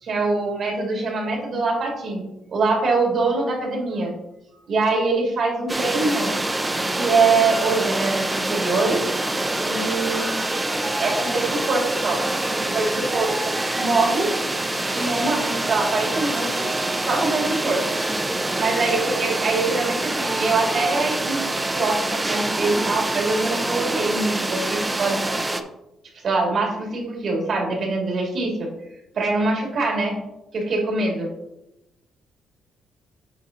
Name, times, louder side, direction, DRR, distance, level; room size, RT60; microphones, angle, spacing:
voice 1, 0.0-2.2 2.5-4.1 4.7-6.3 6.9-9.0 9.7-12.2 12.6-14.3 14.9-16.7 17.1-17.8 18.6-21.4 21.7-25.2 26.2-28.7 29.1-30.1 30.5-31.3, right 3 dB, 55° right, 0 dB, 2.7 m, -24 dB
sound 1, 5.7-25.6, right 2 dB, 15° right, 0.7 m, -25 dB
8.4 x 4.7 x 3.9 m, 0.90 s
cardioid pair, 90°, 0 cm